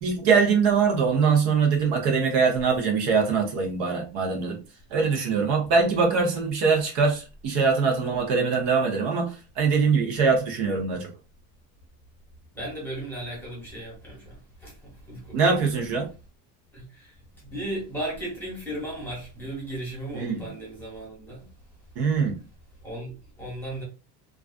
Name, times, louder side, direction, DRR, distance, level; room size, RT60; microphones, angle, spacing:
voice 1, 0.0-4.6 4.9-11.1 15.3-16.1 20.1-20.5 22.0-22.3, right 5 dB, 60° right, 0.8 m, -23 dB
voice 2, 5.7-6.2 12.5-15.6 16.7-17.2 17.4-21.5 22.8-23.8, right 1 dB, 5° left, 1.1 m, -36 dB
2.4 x 2.3 x 2.3 m
cardioid pair, 150°, 45 cm